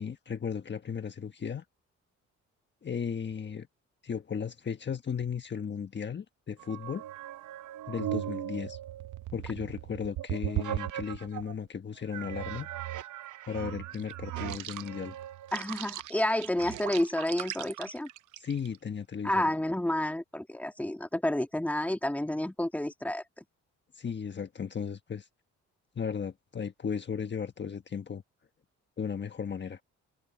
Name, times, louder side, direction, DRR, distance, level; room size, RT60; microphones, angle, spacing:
voice 1, 0.0-1.6 2.8-3.7 4.0-7.0 7.9-8.8 9.3-12.7 13.5-15.2 18.4-19.4 23.9-25.3 25.9-28.2 29.0-29.8, left 7 dB, 35° left, 1.4 m, -35 dB
sound 1, 6.6-11.6 12.1-18.8, right 13 dB, 75° right, 0.8 m, -38 dB
voice 2, 15.5-18.1 19.2-23.2, left 1 dB, 5° left, 2.0 m, -30 dB
cardioid pair, 90°, 30 cm